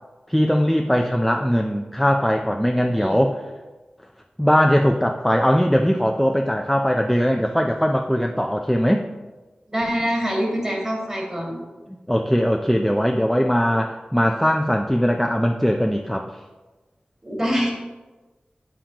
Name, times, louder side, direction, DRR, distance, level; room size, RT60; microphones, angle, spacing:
voice 1, 0.3-3.4 4.4-9.0 12.1-16.3, equal, ahead, 3 dB, 0.4 m, -20 dB
voice 2, 2.8-3.2 9.7-11.6 17.2-17.7, equal, 25° right, -2 dB, 2.3 m, -25 dB
8.6 x 7.3 x 3.0 m, 1.2 s
wide cardioid pair, 85°, 3 cm